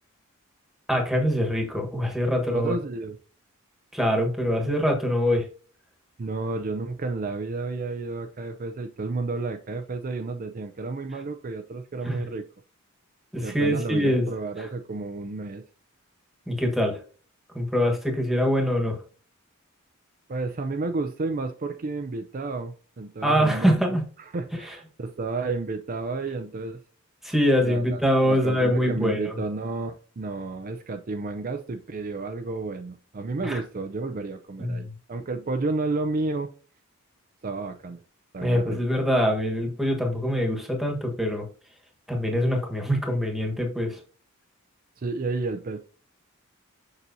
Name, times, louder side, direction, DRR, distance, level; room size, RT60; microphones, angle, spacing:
voice 1, 0.9-2.7 3.9-5.5 12.0-12.2 13.3-14.3 16.5-17.0 17.5-19.0 23.2-24.0 27.2-29.3 33.4-33.6 34.6-34.9 38.4-41.5 42.1-44.0, equal, ahead, 2 dB, 1.3 m, -24 dB
voice 2, 2.5-3.2 6.2-12.4 13.4-15.6 20.3-26.8 27.6-36.5 37.4-38.0 38.3-38.8 45.0-45.8, right 3 dB, 40° right, 6 dB, 0.5 m, -31 dB
6.7 x 6.0 x 2.7 m, 0.40 s
head